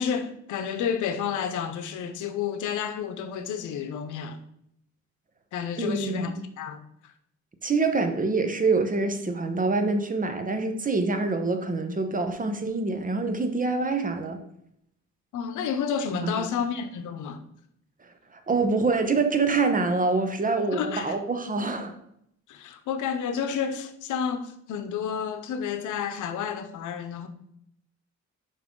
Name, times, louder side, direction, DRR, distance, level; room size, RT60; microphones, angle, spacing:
voice 1, 0.0-4.4 5.5-7.1 15.3-17.4 20.7-21.2 22.5-27.3, left 7 dB, 80° left, 0.8 m, -30 dB
voice 2, 5.8-6.3 7.6-14.4 16.1-16.5 18.3-21.9, right 3 dB, 25° right, 1.0 m, -25 dB
6.0 x 5.5 x 3.8 m
cardioid pair, 90°, 30 cm